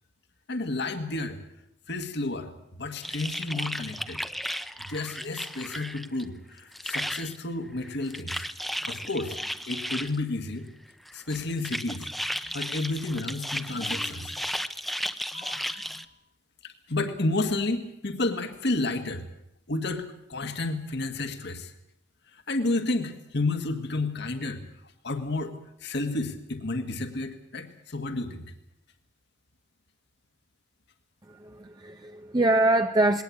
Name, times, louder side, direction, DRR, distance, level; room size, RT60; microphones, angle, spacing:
voice 1, 0.5-1.4 1.9-4.3 4.8-8.5 8.9-9.4 9.7-10.7 11.1-14.4 15.3-16.1 16.6-19.3 19.7-21.7 22.3-24.6 25.0-25.5 25.8-28.5, left 2 dB, 65° left, 1.8 m, -31 dB
sound 1, 3.0-6.2 6.5-7.4 7.8-10.2 11.1-16.0, equal, ahead, 0.9 m, -34 dB
voice 2, 31.3-33.2, right 2 dB, 20° right, 0.8 m, -24 dB
20.5 x 18.5 x 8.5 m
head